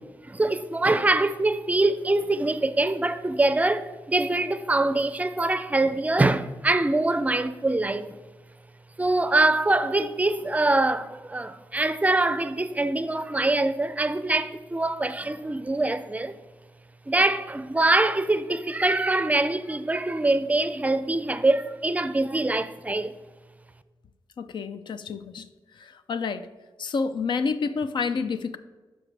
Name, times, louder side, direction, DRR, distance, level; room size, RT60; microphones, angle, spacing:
voice 1, 0.3-8.2 9.0-16.3 17.1-23.1, right 2 dB, 20° right, 0.4 m, -24 dB
voice 2, 24.4-25.5 25.8-26.4 26.8-28.6, left 5 dB, 75° left, 0.5 m, -29 dB
10.5 x 6.3 x 3.3 m
wide cardioid pair, 100°, 8 cm